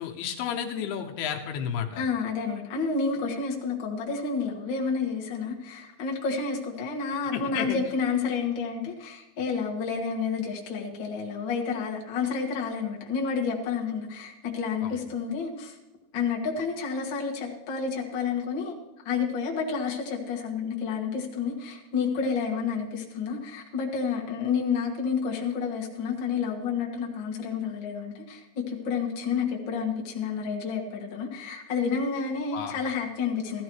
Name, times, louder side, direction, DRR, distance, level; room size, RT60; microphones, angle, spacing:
voice 1, 0.0-2.0 7.3-7.8 14.8-15.0 32.5-32.8, left 8 dB, 85° left, 3 dB, 2.9 m, -32 dB
voice 2, 2.0-15.7 16.1-18.7 19.0-33.6, left 5 dB, 55° left, -1 dB, 1.3 m, -30 dB
15.5 x 13.0 x 3.1 m, 0.95 s
omnidirectional pair, 4.5 m